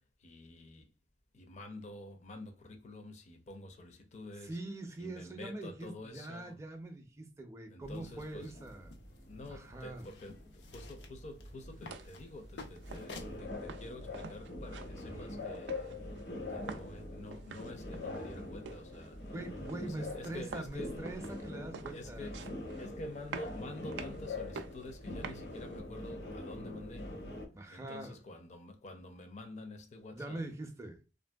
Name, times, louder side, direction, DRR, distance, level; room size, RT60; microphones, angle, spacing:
voice 1, 0.2-0.8 1.3-4.6 5.0-6.6 7.7-8.5 9.3-15.9 16.5-19.2 19.8-21.0 21.9-22.5 22.8-27.1 27.7-30.4, left 2 dB, 40° left, 0.5 m, -48 dB
voice 2, 4.4-8.9 9.5-10.1 19.3-22.3 27.5-28.2 30.1-31.0, right 2 dB, 15° right, 0.5 m, -43 dB
sound 1, 7.8-27.5, left 2 dB, 70° left, 0.9 m, -44 dB
sound 2, 7.9-13.4, left 3 dB, 90° left, 0.6 m, -53 dB
sound 3, 11.6-25.8, right 5 dB, 75° right, 0.3 m, -50 dB
3.2 x 2.6 x 2.2 m
head